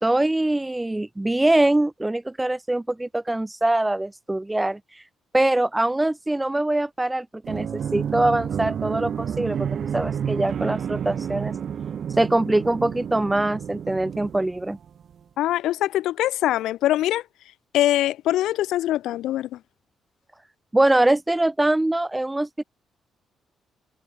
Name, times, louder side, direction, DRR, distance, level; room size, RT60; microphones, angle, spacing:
voice 1, 0.0-4.8 5.3-9.7 9.9-11.5 12.2-14.8 20.7-22.6, right 1 dB, 15° right, 1.3 m, -23 dB
sound 1, 7.4-15.0, right 8 dB, 55° right, 7.9 m, -30 dB
voice 2, 15.4-17.2 17.7-19.6, left 14 dB, 65° left, 4.2 m, -23 dB
figure-of-eight pair, 40°, 0 cm